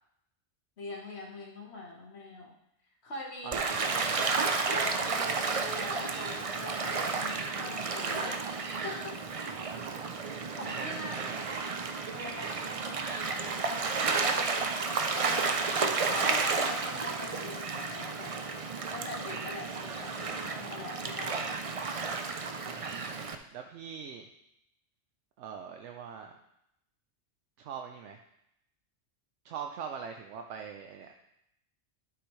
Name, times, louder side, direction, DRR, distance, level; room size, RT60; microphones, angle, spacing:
voice 1, 0.8-2.6 3.0-3.5 4.7-8.5 8.8-9.2 10.6-11.2 12.1-14.3 15.1-15.7 16.1-18.3 18.9-21.5, left 2 dB, 65° left, -1 dB, 1.7 m, -43 dB
voice 2, 3.4-4.4 9.5-10.1 10.8-11.5 15.4-16.0 22.6-24.3 25.4-26.4 27.6-28.2 29.4-31.1, right 7 dB, 80° right, 4 dB, 0.9 m, -43 dB
Gull seagull / Waves surf, 3.5-23.4, right 4 dB, 40° right, 0.5 m, -32 dB
11.5 x 5.9 x 3.2 m, 0.81 s
omnidirectional pair, 1.2 m